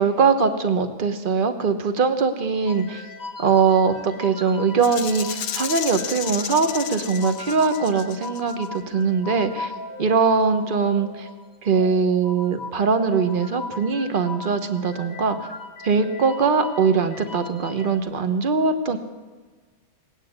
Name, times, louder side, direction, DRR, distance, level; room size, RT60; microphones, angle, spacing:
voice 1, 0.0-3.1 3.4-9.7 10.0-11.3 11.6-15.5 15.8-19.0, right 5 dB, 40° right, 9 dB, 0.7 m, -21 dB
sound 1, 2.7-18.0, left 3 dB, 20° left, 1.7 m, -38 dB
Rattle (instrument), 4.8-8.7, left 8 dB, 60° left, 1.2 m, -32 dB
19.5 x 9.2 x 8.0 m, 1.4 s
omnidirectional pair, 2.2 m